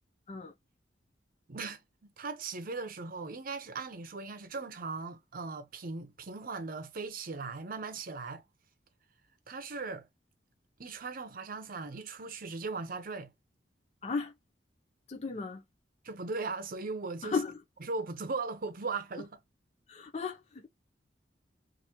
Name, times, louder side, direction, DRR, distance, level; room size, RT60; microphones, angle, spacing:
voice 1, 1.5-8.4 9.5-10.1 10.8-13.3 16.0-17.3 17.9-19.3, right 4 dB, 50° right, 0.7 m, -38 dB
voice 2, 14.0-14.3 15.1-15.6 17.2-17.6 19.9-20.7, left 4 dB, 35° left, 0.6 m, -35 dB
2.9 x 2.7 x 4.2 m
head